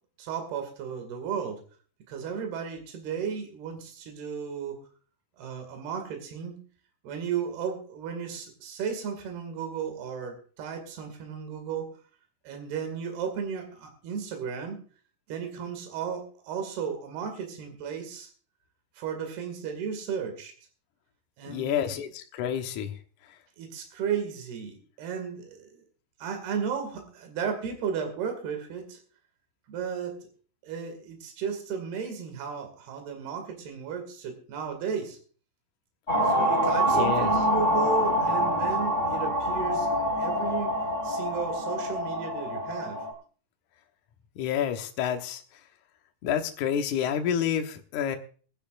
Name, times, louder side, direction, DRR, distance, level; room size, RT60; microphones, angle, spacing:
voice 1, 0.2-1.6 2.1-4.8 5.4-6.6 7.0-11.9 12.5-14.8 15.3-18.3 19.0-20.5 21.4-22.0 23.6-25.8 26.2-29.0 29.7-30.2 30.6-35.2 36.2-40.7 41.0-43.0, right 7 dB, 65° right, 5 dB, 4.2 m, -34 dB
voice 2, 21.5-23.0 36.9-37.4 44.4-45.4 46.2-48.2, left 9 dB, 70° left, 5 dB, 1.9 m, -29 dB
sound 1, 36.1-43.1, equal, 15° left, 2.4 m, -26 dB
22.5 x 10.5 x 2.5 m, 0.41 s
omnidirectional pair, 5.0 m